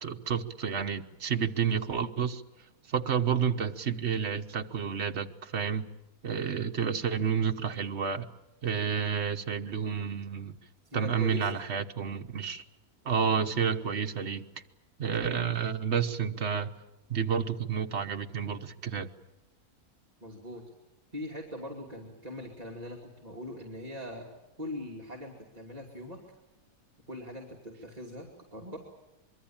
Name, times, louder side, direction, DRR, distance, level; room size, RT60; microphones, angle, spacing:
voice 1, 0.0-2.4 2.9-5.8 6.2-8.3 8.6-10.6 10.9-12.6 13.0-14.4 15.0-16.7 17.1-19.1, right 7 dB, 50° right, 6 dB, 1.3 m, -30 dB
voice 2, 10.9-11.6 20.2-20.6 21.1-24.3 24.6-26.2 27.1-28.8, left 1 dB, 25° right, -2 dB, 2.7 m, -41 dB
25.0 x 23.0 x 8.8 m, 0.95 s
omnidirectional pair, 1.5 m